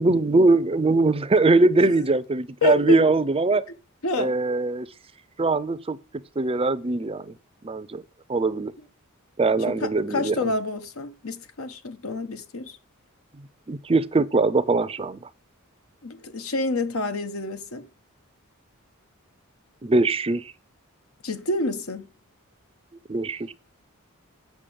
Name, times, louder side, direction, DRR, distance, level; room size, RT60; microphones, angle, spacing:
voice 1, 0.0-3.6 4.2-4.9 5.4-6.0 6.4-7.3 7.6-8.0 8.3-8.7 9.4-10.4 13.7-15.3 19.8-20.5 23.1-23.5, right 3 dB, 25° right, 0.5 m, -21 dB
voice 2, 2.6-3.0 4.0-4.4 9.7-12.8 16.0-17.8 21.2-22.1, left 3 dB, 80° left, 1.3 m, -28 dB
8.5 x 6.0 x 5.2 m
head